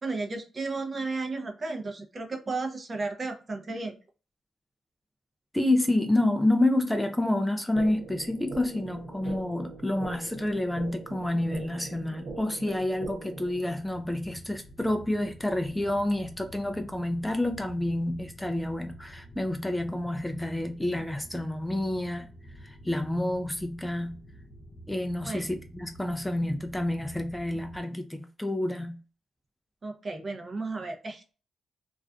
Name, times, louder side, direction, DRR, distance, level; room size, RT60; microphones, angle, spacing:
voice 1, 0.0-4.0 25.3-25.5 29.8-31.3, right 3 dB, 40° right, 0.6 m, -34 dB
voice 2, 5.5-22.3 22.6-24.2 24.9-29.0, left 1 dB, 5° left, 0.4 m, -29 dB
sound 1, 7.7-13.7, right 3 dB, 80° right, 0.6 m, -42 dB
sound 2, 13.6-27.8, equal, 50° left, 0.7 m, -49 dB
2.4 x 2.3 x 2.3 m
cardioid pair, 70°, 0 cm